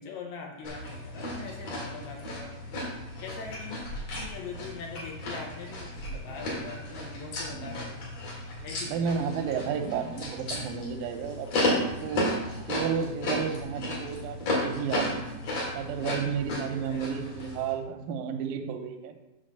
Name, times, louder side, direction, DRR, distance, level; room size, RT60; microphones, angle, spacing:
voice 1, 0.0-2.6 3.2-3.8 4.1-8.0 8.6-9.0 16.7-17.2, left 5 dB, 70° left, 0 dB, 2.3 m, -42 dB
sound 1, 0.6-17.7, left 1 dB, 45° left, 2.6 m, -34 dB
voice 2, 7.5-7.8 8.9-12.2 12.7-15.3 15.8-19.1, right 7 dB, 80° right, 4 dB, 2.1 m, -32 dB
7.4 x 3.8 x 6.6 m, 1.0 s
omnidirectional pair, 4.9 m